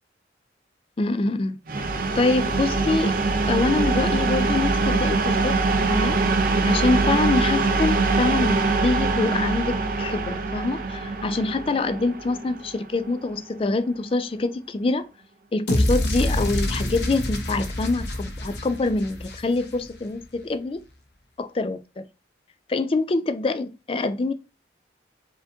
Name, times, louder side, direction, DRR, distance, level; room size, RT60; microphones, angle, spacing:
voice 1, 1.0-1.6 2.1-3.2 3.5-5.6 5.9-6.2 6.7-15.1 15.5-20.8 21.4-22.0 22.7-24.3, left 3 dB, 30° left, 0.3 m, -25 dB
sound 1, 1.7-13.3, right 3 dB, 50° right, 0.5 m, -23 dB
sound 2, 15.7-19.9, left 1 dB, 65° left, 1.0 m, -26 dB
4.7 x 3.6 x 2.7 m
head